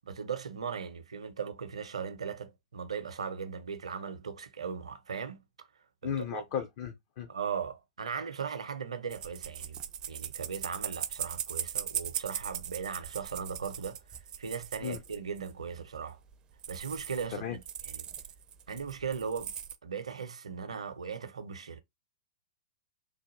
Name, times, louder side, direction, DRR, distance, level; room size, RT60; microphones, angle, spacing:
voice 1, 0.0-5.7 6.0-6.4 7.3-9.8 10.1-14.0 14.4-16.2 16.7-18.1 18.7-19.5 19.8-21.8, right 6 dB, 70° right, 0.6 m, -38 dB
voice 2, 6.0-7.3 14.8-15.0 17.4-17.6, left 8 dB, 40° left, 0.5 m, -35 dB
sound 1, 9.1-15.5 16.0-16.1 16.3-16.4 16.6-17.3 17.6-19.8, right 9 dB, 25° right, 0.4 m, -39 dB
3.3 x 2.2 x 3.1 m
figure-of-eight pair, 110°, 3 cm